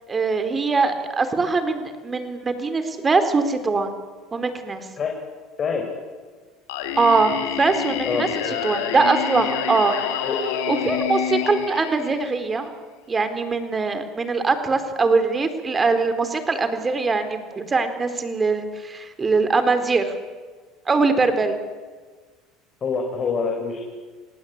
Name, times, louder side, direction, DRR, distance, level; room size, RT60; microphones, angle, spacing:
voice 1, 0.1-3.9 4.3-4.9 7.0-10.0 10.7-12.7 13.1-20.1 20.9-21.6, right 4 dB, 25° right, 9 dB, 4.1 m, -22 dB
Singing, 6.7-12.6, left 10 dB, 85° left, 3.9 m, -28 dB
voice 2, 8.1-8.5 10.3-10.4 22.8-23.8, left 5 dB, 35° left, 1 dB, 5.5 m, -25 dB
28.0 x 19.0 x 8.8 m, 1.4 s
supercardioid pair, 95°, 0 cm